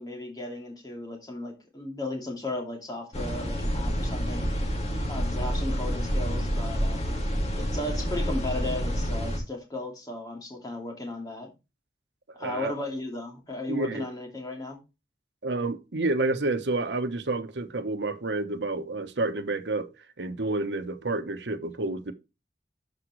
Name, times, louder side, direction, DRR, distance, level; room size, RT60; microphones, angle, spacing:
voice 1, 0.0-4.5 5.1-7.0 7.5-11.5 12.3-14.8, left 2 dB, 20° left, 2.5 m, -35 dB
sound 1, 3.1-9.4, equal, 35° left, 2.2 m, -28 dB
voice 2, 12.3-12.7 13.7-14.1 15.4-19.9 20.2-22.1, right 2 dB, 85° right, 1.1 m, -29 dB
12.5 x 5.1 x 3.1 m
head